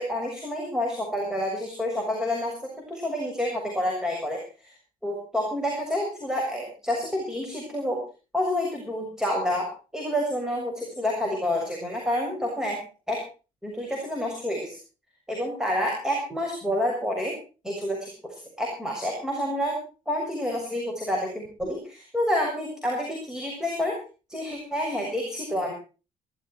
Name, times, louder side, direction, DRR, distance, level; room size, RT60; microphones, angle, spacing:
voice 1, 0.0-2.5 2.9-4.7 5.0-8.0 8.3-9.7 9.9-12.8 13.1-13.2 13.6-14.8 15.3-17.3 17.6-19.8 20.1-23.9 24.3-25.7, left 1 dB, 5° right, 0 dB, 7.0 m, -28 dB
18.0 x 14.5 x 4.6 m, 0.35 s
cardioid pair, 85°, 15 cm